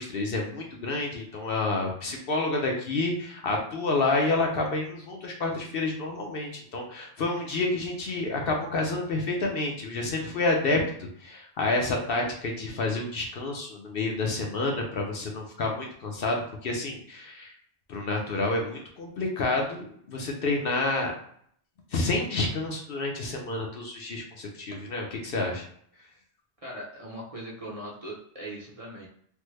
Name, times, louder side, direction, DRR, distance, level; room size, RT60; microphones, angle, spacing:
voice 1, 0.0-10.8 11.2-17.5 17.9-21.1 21.9-25.6, left 2 dB, 60° left, 1 dB, 0.8 m, -29 dB
voice 2, 26.6-29.1, right 1 dB, 35° right, -4 dB, 0.7 m, -40 dB
3.3 x 2.1 x 3.1 m, 0.62 s
omnidirectional pair, 1.1 m